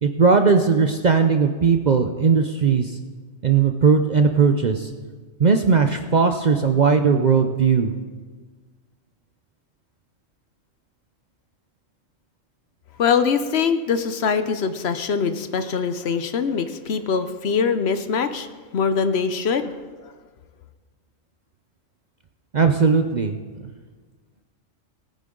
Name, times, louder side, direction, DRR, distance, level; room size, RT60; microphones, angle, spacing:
voice 1, 0.0-3.0 3.4-4.9 5.4-7.9 22.5-23.7, right 5 dB, 50° right, 6 dB, 0.6 m, -18 dB
voice 2, 13.0-18.5 18.7-19.7, left 6 dB, 60° left, 10 dB, 0.9 m, -23 dB
20.0 x 9.2 x 3.8 m, 1.4 s
omnidirectional pair, 1.3 m